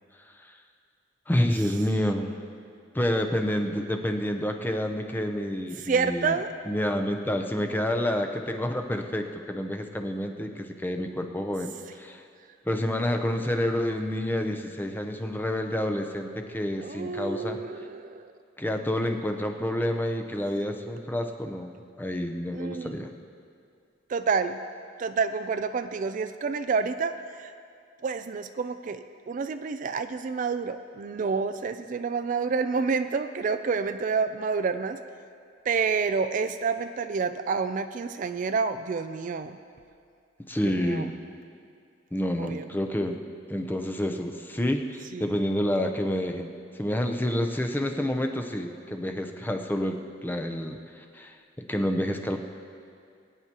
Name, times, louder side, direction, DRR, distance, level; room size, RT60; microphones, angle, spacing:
voice 1, 1.3-2.4 2.9-6.4 6.7-12.2 12.7-17.6 18.6-21.7 22.0-23.1 40.5-41.1 42.1-43.2 43.5-51.4 51.7-52.4, left 1 dB, 10° left, 4 dB, 0.6 m, -29 dB
voice 2, 5.8-6.5 16.8-18.3 22.5-23.0 24.1-24.6 25.0-27.5 28.0-35.0 35.7-39.6 40.6-41.1 42.4-42.7 45.1-45.3, right 5 dB, 40° right, 9 dB, 0.3 m, -29 dB
22.0 x 9.5 x 2.9 m, 2.3 s
head